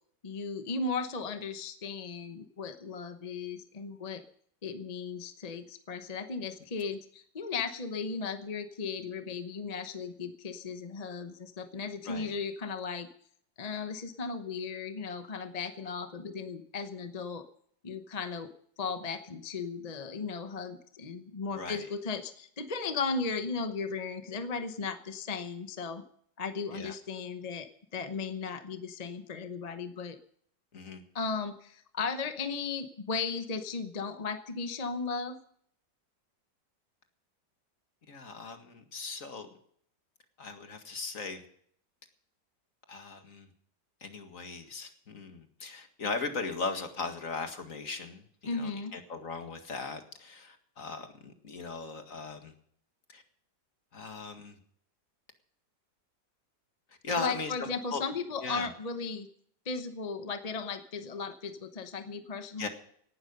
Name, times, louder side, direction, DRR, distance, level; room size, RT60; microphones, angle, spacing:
voice 1, 0.2-4.2 4.6-13.1 13.6-17.4 17.8-18.5 18.8-26.0 26.4-30.2 31.1-35.4 48.4-48.9 57.2-59.3 59.6-62.7, left 4 dB, 30° left, 8 dB, 0.8 m, -36 dB
voice 2, 12.0-12.4 21.5-21.9 26.7-26.9 30.7-31.0 38.1-39.5 40.4-41.4 42.9-43.5 44.0-52.5 53.1-53.2 53.9-54.6 57.0-58.0 58.4-58.7 62.6-62.7, left 4 dB, 50° left, 6 dB, 2.2 m, -38 dB
18.0 x 12.0 x 5.4 m, 0.63 s
omnidirectional pair, 1.9 m